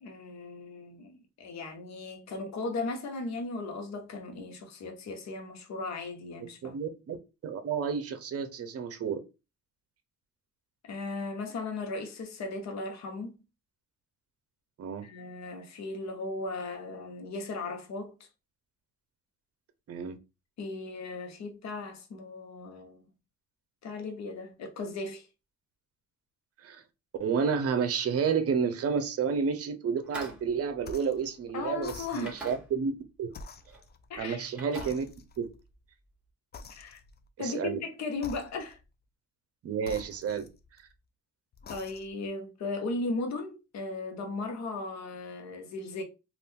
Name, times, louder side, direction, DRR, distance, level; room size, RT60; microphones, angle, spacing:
voice 1, 0.0-6.7 10.8-13.4 15.0-18.2 20.6-23.0 23.8-25.3 31.5-32.4 34.1-34.5 36.8-37.0 37.4-38.8 41.7-46.0, left 3 dB, 65° left, 0.9 m, -37 dB
voice 2, 6.4-7.2 7.4-9.2 14.8-15.1 19.9-20.2 26.6-26.8 27.2-33.3 34.2-35.1 35.4-35.5 37.4-37.8 39.6-40.5, right 6 dB, 50° right, 0.7 m, -30 dB
sound 1, 30.0-31.7 32.2-33.1 33.4-33.8 34.1-35.7, right 2 dB, 5° right, 1.4 m, -46 dB
sound 2, 30.8-31.2 31.8-32.6 33.3-34.4 34.8-35.6 36.5-37.3 38.2-38.9 39.8-40.9 41.5-42.3, left 4 dB, 35° left, 0.4 m, -47 dB
2.6 x 2.4 x 3.6 m
cardioid pair, 90°, 30 cm